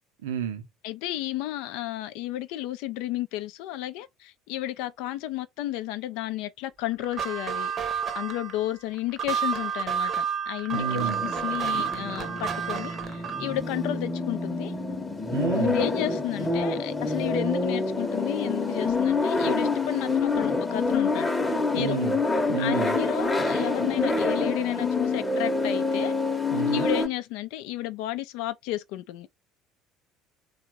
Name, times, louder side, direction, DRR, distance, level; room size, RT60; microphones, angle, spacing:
voice 1, 0.2-0.7 10.7-11.2 15.3-15.8 21.8-22.2 22.5-23.0 26.5-26.9, right 8 dB, 65° right, 0.7 m, -30 dB
voice 2, 0.8-7.7 8.2-14.7 15.6-21.3 21.7-22.0 22.6-26.1 26.7-29.3, left 14 dB, 60° left, 0.4 m, -32 dB
sound 1, 7.0-13.6, right 7 dB, 35° right, 0.8 m, -30 dB
sound 2, 10.8-27.1, left 3 dB, 15° left, 0.9 m, -27 dB
3.6 x 2.3 x 4.4 m
figure-of-eight pair, 60°, 0 cm